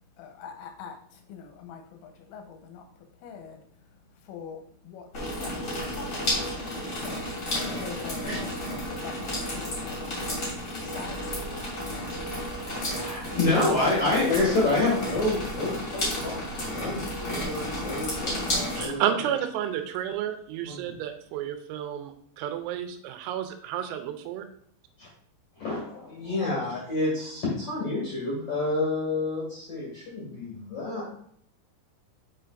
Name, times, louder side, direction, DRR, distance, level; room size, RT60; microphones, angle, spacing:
voice 1, 0.2-2.9 3.2-3.6 4.2-7.3 7.7-9.2 9.5-10.3 10.8-11.8, left 6 dB, 85° left, 4 dB, 3.2 m, -44 dB
sound 1, 5.1-18.9, left 1 dB, 40° left, 1.6 m, -32 dB
voice 2, 12.6-18.4 18.8-19.3 20.6-20.9 25.0-25.1 25.6-31.1, left 2 dB, 55° left, -6 dB, 1.6 m, -28 dB
voice 3, 18.8-24.5, right 10 dB, 85° right, 7 dB, 3.3 m, -31 dB
7.3 x 5.7 x 2.5 m, 0.64 s
omnidirectional pair, 6.0 m